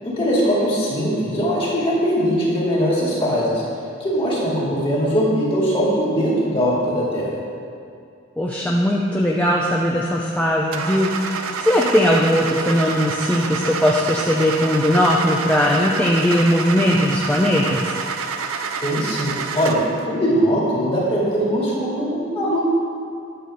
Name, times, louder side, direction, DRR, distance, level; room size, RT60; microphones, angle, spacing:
voice 1, 0.0-3.6 4.0-7.4 18.8-22.6, equal, 25° left, -6 dB, 2.2 m, -21 dB
voice 2, 8.4-17.9, equal, 5° left, -3 dB, 0.5 m, -19 dB
Car / Engine starting, 10.7-20.0, right 5 dB, 90° right, 0.5 m, -28 dB
9.2 x 4.3 x 6.7 m, 2.4 s
head